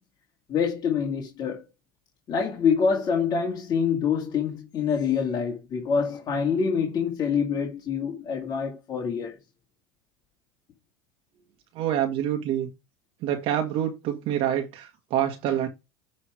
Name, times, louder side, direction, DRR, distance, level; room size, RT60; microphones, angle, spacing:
voice 1, 0.5-1.6 2.3-9.3, left 6 dB, 40° left, 2.2 m, -26 dB
voice 2, 11.7-12.7 13.2-15.7, right 10 dB, 55° right, 1.7 m, -26 dB
9.8 x 3.8 x 4.8 m
supercardioid pair, 105°, 11 cm